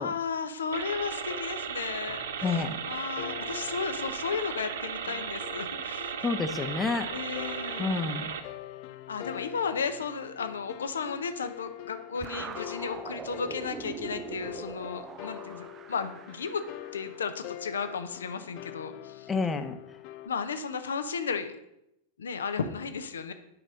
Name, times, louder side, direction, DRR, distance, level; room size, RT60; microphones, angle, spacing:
voice 1, 0.0-2.2 2.5-6.1 7.1-8.1 9.1-16.6 16.9-19.3 20.3-21.6 22.2-23.3, left 5 dB, 70° left, 9 dB, 0.8 m, -34 dB
sound 1, 0.7-8.4, right 7 dB, 60° right, 0.9 m, -36 dB
sound 2, 1.3-20.3, left 14 dB, 45° left, 0.4 m, -45 dB
voice 2, 2.4-2.8 6.2-7.1 7.8-8.3 19.3-19.8, left 4 dB, 15° left, 9 dB, 0.9 m, -29 dB
sound 3, 12.2-17.3, right 7 dB, 25° right, 0.5 m, -42 dB
8.8 x 5.5 x 6.4 m, 0.84 s
figure-of-eight pair, 90°, 0 cm